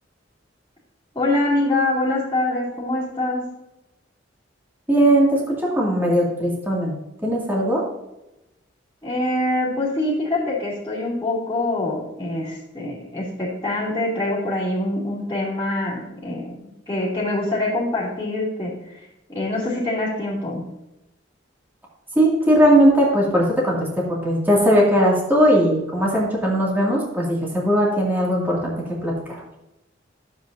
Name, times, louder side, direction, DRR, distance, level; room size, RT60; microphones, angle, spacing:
voice 1, 1.1-3.4 9.0-16.6 16.9-19.0 19.3-20.7, left 2 dB, 15° left, -12 dB, 2.7 m, -24 dB
voice 2, 4.9-6.9 7.2-7.8 22.2-28.7 29.0-29.4, equal, 10° right, -4 dB, 2.1 m, -19 dB
11.5 x 7.4 x 2.6 m, 0.93 s
head